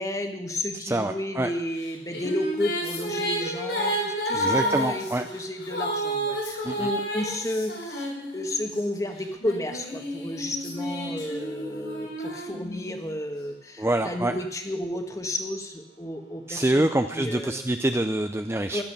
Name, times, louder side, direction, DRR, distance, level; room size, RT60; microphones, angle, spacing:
voice 1, 0.0-8.1 8.3-16.9 17.1-17.6 18.7-18.8, left 1 dB, 20° left, 5 dB, 1.5 m, -32 dB
voice 2, 0.8-1.5 4.3-5.3 6.6-6.9 13.8-14.3 16.5-18.8, right 1 dB, 15° right, 7 dB, 0.5 m, -26 dB
Female singing, 1.8-8.7 9.4-13.2, equal, 85° left, 6.6 m, -30 dB
16.0 x 11.5 x 6.8 m, 0.79 s
head